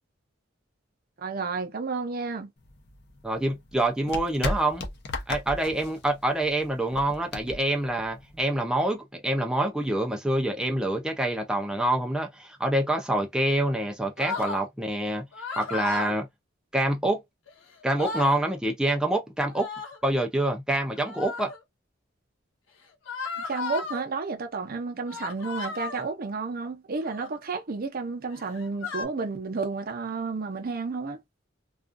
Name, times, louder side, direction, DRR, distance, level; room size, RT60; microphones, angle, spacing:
voice 1, 1.2-2.5 23.5-31.2, right 4 dB, 50° right, 0.6 m, -31 dB
sound 1, 2.6-8.6, left 2 dB, 55° left, 0.6 m, -36 dB
voice 2, 3.2-4.8 5.3-15.2 15.6-16.3 16.7-17.2 17.8-19.7 20.0-21.5, right 1 dB, 5° right, 0.4 m, -26 dB
sound 2, 14.2-14.6 15.3-16.1 17.5-17.6 17.8-18.4 19.5-20.0 20.9-21.6 23.1-24.0 25.1-26.1 27.0-27.4 28.3-29.0, left 4 dB, 85° left, 0.8 m, -34 dB
2.4 x 2.3 x 2.4 m
head